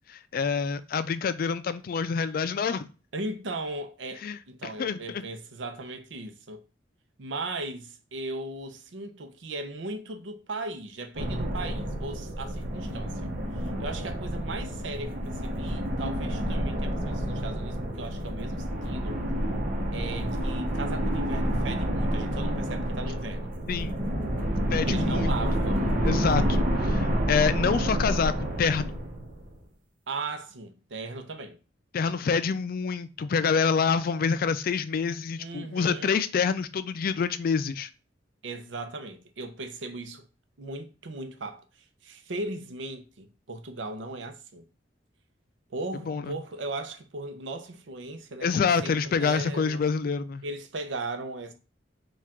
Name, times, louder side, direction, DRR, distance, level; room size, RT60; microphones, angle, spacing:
voice 1, 0.1-2.9 4.2-5.3 23.7-24.0 24.7-25.3 26.0-29.0 31.9-37.9 46.1-46.3 48.4-50.4, left 5 dB, 50° left, 0.3 m, -27 dB
voice 2, 3.1-6.6 7.2-13.3 13.5-19.2 19.9-23.6 24.9-25.9 30.1-31.6 35.4-36.3 38.4-40.3 40.6-41.7 42.0-44.7 45.7-49.8 50.4-51.5, right 2 dB, 90° right, 0.6 m, -37 dB
sound 1, 11.1-29.6, equal, 50° right, 1.0 m, -29 dB
4.6 x 2.4 x 3.6 m
head